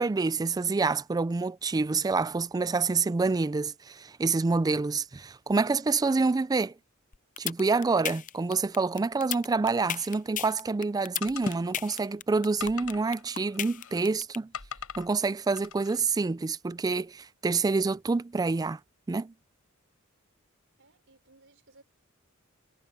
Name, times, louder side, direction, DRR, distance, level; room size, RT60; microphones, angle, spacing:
voice 1, 0.0-6.7 7.4-14.5 15.0-18.8 19.1-19.3, right 4 dB, 20° right, 0.3 m, -27 dB
sound 1, 7.1-14.4, left 9 dB, 35° left, 0.5 m, -33 dB
sound 2, 11.2-12.0 12.6-14.1 14.5-15.1 15.6-16.0, left 7 dB, 80° left, 5.2 m, -42 dB
voice 2, 20.8-21.8, right 2 dB, 60° right, 5.4 m, -59 dB
head